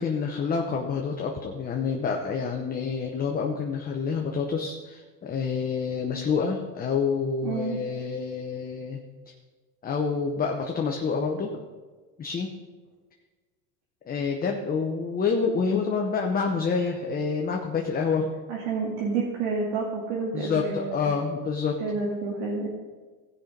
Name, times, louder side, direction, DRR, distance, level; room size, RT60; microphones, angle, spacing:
voice 1, 0.0-9.0 9.8-11.6 12.2-12.5 14.1-18.3 20.3-21.8, left 5 dB, 20° left, 2 dB, 0.8 m, -28 dB
voice 2, 7.4-7.8 18.5-21.1 21.8-22.7, right 4 dB, 70° right, -4 dB, 2.5 m, -29 dB
16.5 x 5.7 x 5.2 m, 1.4 s
supercardioid pair, 130°, 47 cm